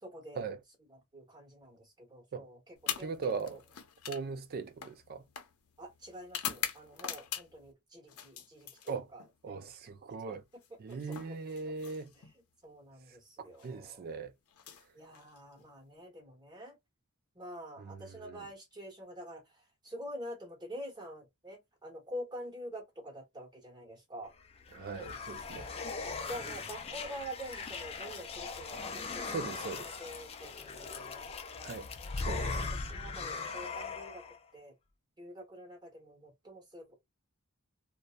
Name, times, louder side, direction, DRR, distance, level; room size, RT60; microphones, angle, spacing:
voice 1, 0.0-0.4 0.9-3.6 5.8-9.6 10.3-10.4 10.9-11.4 12.2-12.3 12.6-14.0 14.9-16.8 17.3-19.4 19.8-24.3 26.3-31.3 32.0-32.6 32.9-34.7 35.2-37.0, equal, 20° right, 0.9 m, -47 dB
sound 1, 2.8-7.7 8.1-9.3 10.5-12.4 13.4-13.7 14.5-15.7, left 9 dB, 80° left, 0.6 m, -43 dB
voice 2, 3.0-3.6 4.1-5.2 8.9-9.1 9.4-10.4 10.8-12.1 13.6-14.3 17.8-18.5 24.7-25.7 29.3-29.9 31.6-31.9 32.2-32.7, right 4 dB, 45° right, 0.4 m, -39 dB
sound 2, 24.4-34.4, left 4 dB, 25° left, 0.4 m, -40 dB
2.7 x 2.0 x 2.2 m
head